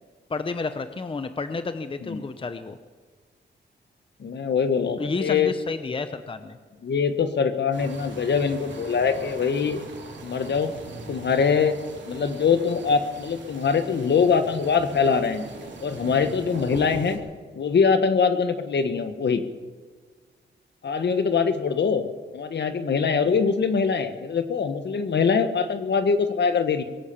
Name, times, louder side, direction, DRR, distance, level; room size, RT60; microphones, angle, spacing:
voice 1, 0.3-2.8 5.0-6.6, left 3 dB, 25° left, 10 dB, 0.7 m, -30 dB
voice 2, 4.2-5.5 6.8-9.8 10.2-10.7 11.1-11.8 12.1-15.5 15.8-17.2 17.6-19.4 20.8-26.8, left 5 dB, 65° left, 9 dB, 1.3 m, -23 dB
sound 1, 7.7-17.2, right 3 dB, 70° right, 3.0 m, -41 dB
23.0 x 8.5 x 6.8 m, 1.4 s
cardioid pair, 90°, 19 cm